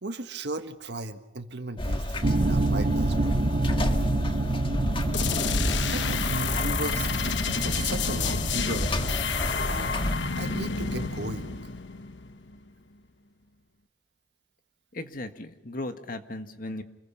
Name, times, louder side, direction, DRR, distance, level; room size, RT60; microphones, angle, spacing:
voice 1, 0.0-3.4 5.8-9.4 9.7-10.0 10.4-11.6, right 2 dB, 70° right, 8 dB, 1.6 m, -36 dB
sound 1, 1.8-10.2, left 1 dB, 30° left, 1.6 m, -31 dB
sound 2, 2.2-11.2, right 2 dB, 45° right, 0.7 m, -29 dB
sound 3, 5.1-12.7, left 5 dB, 85° left, 1.1 m, -30 dB
voice 2, 14.9-16.8, left 2 dB, 50° left, 7 dB, 1.7 m, -36 dB
28.5 x 21.5 x 5.7 m, 1.0 s
head